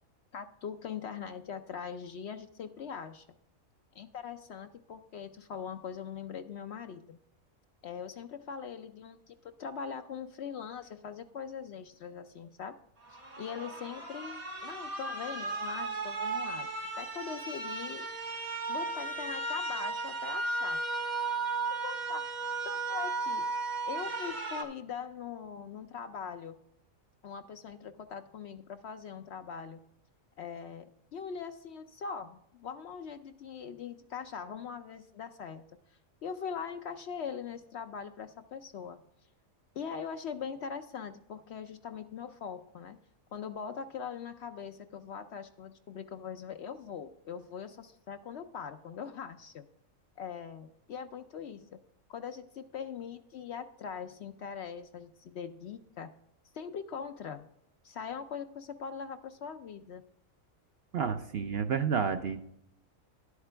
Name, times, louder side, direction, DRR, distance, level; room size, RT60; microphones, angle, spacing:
voice 1, 0.3-3.3 3.9-7.2 7.8-12.8 13.1-18.1 18.7-20.8 21.8-22.2 22.6-23.4 23.9-26.6 27.2-29.8 30.4-35.6 36.2-39.0 39.7-43.0 43.3-49.6 50.2-51.8 52.1-56.1 56.5-57.5 57.8-60.0, left 7 dB, 65° left, 9 dB, 0.7 m, -41 dB
sound 1, 13.1-24.6, right 3 dB, 80° right, 1.9 m, -35 dB
voice 2, 60.9-62.4, right 6 dB, 60° right, 8 dB, 0.7 m, -30 dB
11.5 x 8.1 x 3.4 m, 0.78 s
omnidirectional pair, 1.5 m